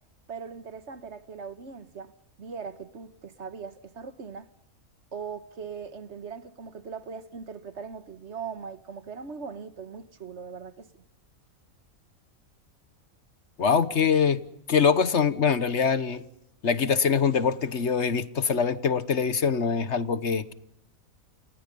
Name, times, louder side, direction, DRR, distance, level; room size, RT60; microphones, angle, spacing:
voice 1, 0.3-2.1 2.4-4.5 5.1-10.9, right 6 dB, 55° right, 1.5 m, -40 dB
voice 2, 13.6-14.4 14.7-16.2 16.6-20.5, left 6 dB, 55° left, 1.4 m, -23 dB
29.5 x 28.5 x 5.4 m
omnidirectional pair, 1.4 m